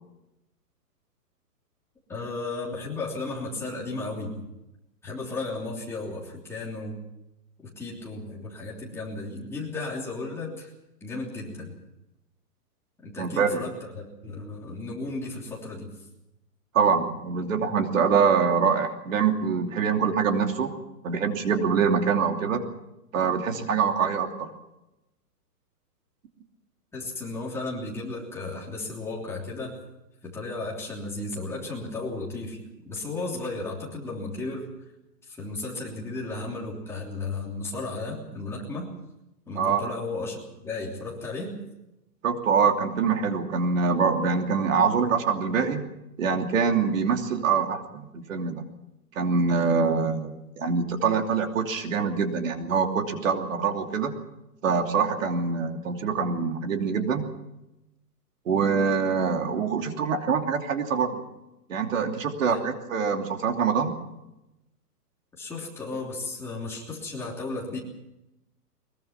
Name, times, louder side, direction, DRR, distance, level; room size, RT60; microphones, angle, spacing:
voice 1, 2.1-4.4 5.0-7.0 7.8-10.7 11.0-11.7 13.0-15.9 26.9-29.8 30.2-32.6 32.8-34.7 35.2-38.9 39.5-41.5 62.5-62.6 65.4-67.8, left 3 dB, 5° left, -4 dB, 3.2 m, -34 dB
voice 2, 13.2-13.6 16.7-20.7 21.0-22.6 23.1-24.5 39.6-39.8 42.2-45.8 46.2-48.6 49.1-54.1 54.6-57.2 58.5-61.2 61.7-63.9, right 5 dB, 50° right, 4 dB, 3.0 m, -24 dB
23.0 x 22.0 x 5.9 m, 0.92 s
hypercardioid pair, 170°, 48 cm